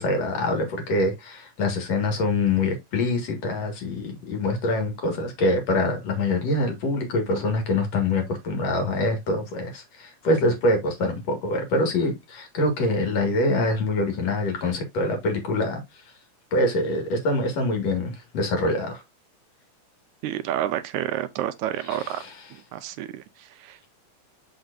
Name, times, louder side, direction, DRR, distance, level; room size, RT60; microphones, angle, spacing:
voice 1, 0.0-16.1 16.5-19.0 21.9-22.3, left 2 dB, 60° left, 3.0 m, -25 dB
voice 2, 20.2-22.2 22.7-23.8, right 12 dB, 80° right, 2.0 m, -29 dB
6.6 x 5.8 x 2.5 m
omnidirectional pair, 3.4 m